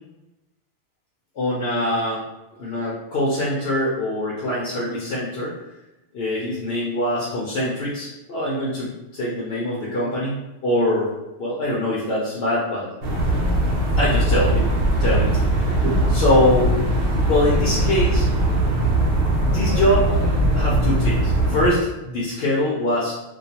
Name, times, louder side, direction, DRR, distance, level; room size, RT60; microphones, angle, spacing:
voice 1, 1.4-2.2 2.6-5.5 6.1-11.1 11.4-12.9 14.0-14.7 15.0-16.7 17.3-18.3 19.4-20.1 20.5-23.1, left 1 dB, 65° left, -5 dB, 0.8 m, -23 dB
sound 1, 13.0-21.7, right 1 dB, 75° right, 0.8 m, -20 dB
2.3 x 2.2 x 2.7 m, 0.99 s
omnidirectional pair, 1.2 m